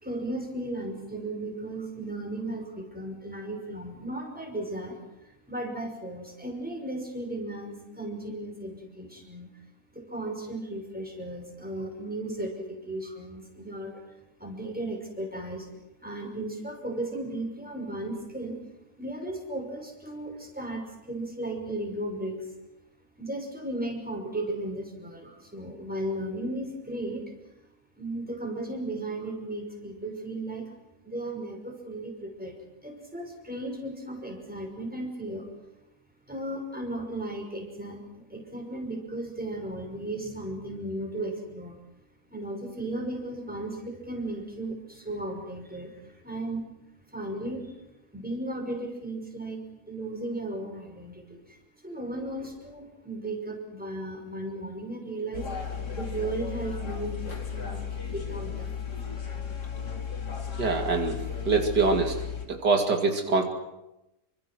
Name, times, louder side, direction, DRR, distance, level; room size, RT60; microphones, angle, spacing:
voice 1, 0.0-9.5 9.9-14.0 14.4-15.7 16.0-18.6 19.0-22.5 23.2-27.3 28.0-30.7 31.0-35.5 36.3-41.8 42.3-46.7 47.1-47.7 48.1-55.5 55.9-58.8, right 1 dB, 5° right, 1 dB, 5.8 m, -35 dB
sound 1, 55.3-62.5, left 7 dB, 80° left, 3.2 m, -35 dB
voice 2, 60.6-61.2 61.5-62.1 62.5-63.4, right 4 dB, 80° right, 3 dB, 3.1 m, -24 dB
27.5 x 25.0 x 6.2 m, 0.93 s
omnidirectional pair, 1.8 m